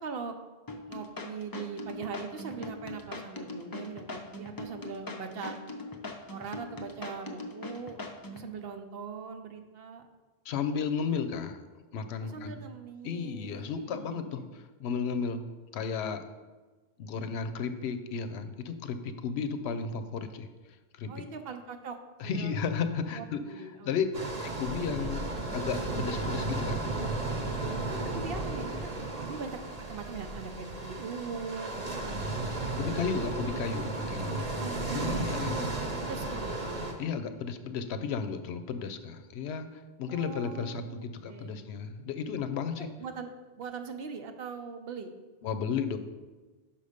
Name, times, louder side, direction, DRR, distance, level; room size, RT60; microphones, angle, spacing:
voice 1, 0.0-0.3 0.9-5.6 6.3-8.0 8.3-10.1 12.2-14.5 21.1-22.0 22.2-22.6 23.1-24.0 27.9-33.0 34.3-35.3 35.7-36.6 40.1-41.6 42.8-43.3 43.6-45.1, right 5 dB, 65° right, 6 dB, 0.8 m, -41 dB
sound 1, 0.7-8.5, left 2 dB, 30° left, 0.4 m, -40 dB
voice 2, 10.4-11.6 11.9-12.6 13.0-15.4 15.7-16.2 17.0-20.5 20.9-21.2 22.2-24.1 24.4-25.2 25.5-26.8 32.8-34.4 34.9-35.7 37.0-42.9 45.4-46.0, left 6 dB, 80° left, 9 dB, 0.8 m, -33 dB
sound 2, 24.1-36.9, right 2 dB, 40° right, 0.9 m, -34 dB
5.7 x 5.3 x 5.0 m, 1.3 s
omnidirectional pair, 1.1 m